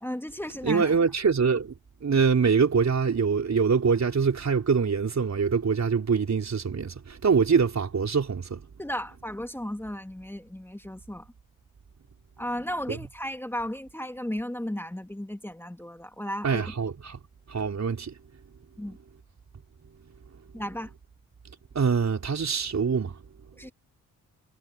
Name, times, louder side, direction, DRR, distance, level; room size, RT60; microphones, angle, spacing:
voice 1, 0.0-1.0 8.8-11.2 12.4-16.7 18.8-19.0 20.5-20.9 23.6-23.7, equal, 5° left, 2.3 m, -34 dB
voice 2, 0.6-1.7 2.0-8.6 12.9-13.0 16.4-17.2 17.5-18.1 21.7-23.2, right 5 dB, 45° right, 4.5 m, -24 dB
supercardioid pair, 50°, 37 cm